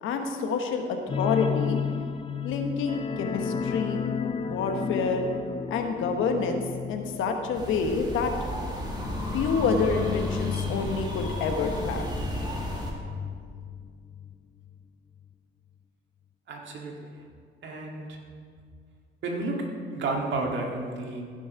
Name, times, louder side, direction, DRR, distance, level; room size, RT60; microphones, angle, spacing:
voice 1, 0.0-1.8 2.4-4.0 4.4-5.2 5.7-6.6 6.9-8.3 9.3-12.0, left 5 dB, 85° left, 4 dB, 1.2 m, -28 dB
sound 1, 1.1-14.4 14.7-14.8 15.2-15.3, left 7 dB, 30° left, 0.5 m, -33 dB
sound 2, 7.5-12.9, equal, 20° right, 2.0 m, -34 dB
voice 2, 16.5-17.2 17.6-18.2 19.2-21.2, right 2 dB, 65° right, 0 dB, 1.9 m, -32 dB
15.0 x 6.3 x 4.7 m, 2.1 s
cardioid pair, 90°, 20 cm